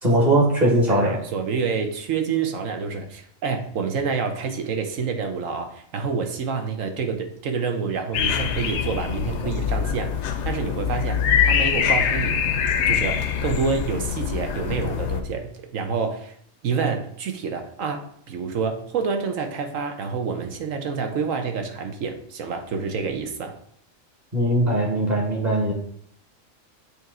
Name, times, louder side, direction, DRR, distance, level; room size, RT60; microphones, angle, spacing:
voice 1, 0.0-1.2 24.3-25.7, right 1 dB, 35° right, -3 dB, 1.5 m, -20 dB
voice 2, 0.9-12.4 12.9-16.3 16.6-23.6, right 5 dB, 80° right, 5 dB, 1.2 m, -28 dB
sound 1, 8.1-15.2, left 8 dB, 70° left, 0.8 m, -24 dB
8.2 x 3.1 x 3.7 m, 0.65 s
omnidirectional pair, 1.3 m